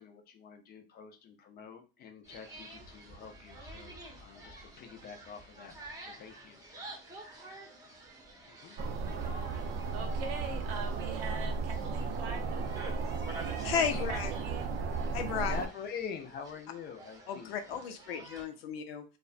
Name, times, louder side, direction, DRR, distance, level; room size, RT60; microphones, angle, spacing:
voice 1, 0.0-6.6 8.5-8.8 15.5-17.8, left 6 dB, 30° left, 6 dB, 0.5 m, -46 dB
sound 1, 2.2-18.5, right 1 dB, 10° right, 0.8 m, -50 dB
sound 2, 8.8-15.7, right 4 dB, 35° right, 0.4 m, -35 dB
voice 2, 9.9-13.0 13.6-14.8, right 5 dB, 70° right, 5 dB, 0.8 m, -43 dB
voice 3, 13.6-14.3 15.1-15.6 17.3-19.0, left 7 dB, 75° left, 7 dB, 0.6 m, -34 dB
2.4 x 2.1 x 2.4 m, 0.31 s
hypercardioid pair, 100°, 30 cm